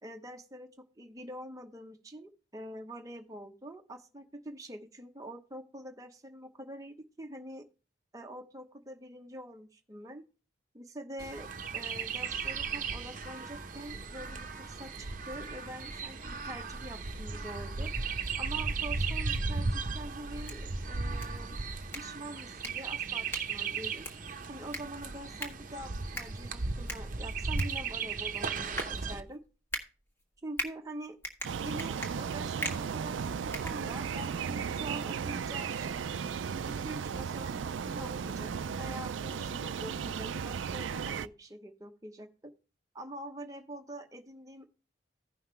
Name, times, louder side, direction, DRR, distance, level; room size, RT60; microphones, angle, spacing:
voice 1, 0.0-0.7 1.0-7.6 8.1-10.2 10.7-17.9 18.4-21.6 21.9-24.1 24.5-29.4 30.4-31.2 31.6-33.2 33.4-36.2 36.7-42.5 42.9-44.6, right 1 dB, 20° right, 3 dB, 0.9 m, -45 dB
Chirp tweet, 11.2-29.2, right 4 dB, 45° right, 0.8 m, -36 dB
sound 1, 20.2-34.4, equal, 10° left, 1.5 m, -43 dB
sound 2, 31.4-41.3, right 6 dB, 85° right, 0.4 m, -35 dB
15.5 x 5.7 x 3.2 m, 0.33 s
head